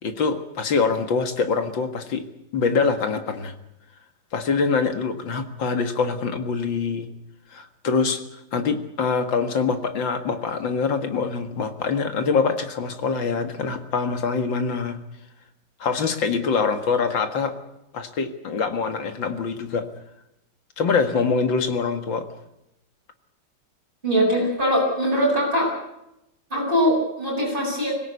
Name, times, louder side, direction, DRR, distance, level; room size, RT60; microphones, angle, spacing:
voice 1, 0.0-2.3 2.5-3.5 4.3-7.1 7.5-8.2 8.5-15.0 15.8-17.6 17.9-19.9 20.8-22.2, left 5 dB, 80° left, 7 dB, 2.6 m, -24 dB
voice 2, 24.0-25.7 26.5-27.9, equal, 25° right, -4 dB, 7.8 m, -21 dB
25.5 x 17.0 x 8.3 m, 0.86 s
omnidirectional pair, 2.0 m